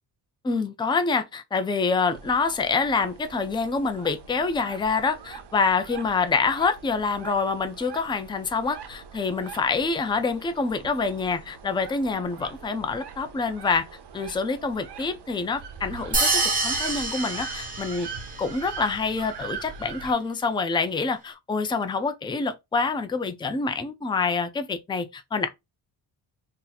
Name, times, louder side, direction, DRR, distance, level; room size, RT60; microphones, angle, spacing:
voice 1, 0.4-13.9 14.1-18.1 18.4-25.5, left 4 dB, 10° left, 0.4 m, -26 dB
sound 1, 2.1-20.1, right 6 dB, 60° right, 0.7 m, -42 dB
sound 2, 16.1-18.4, right 2 dB, 20° right, 1.0 m, -26 dB
2.8 x 2.5 x 3.8 m
cardioid pair, 110°, 45 cm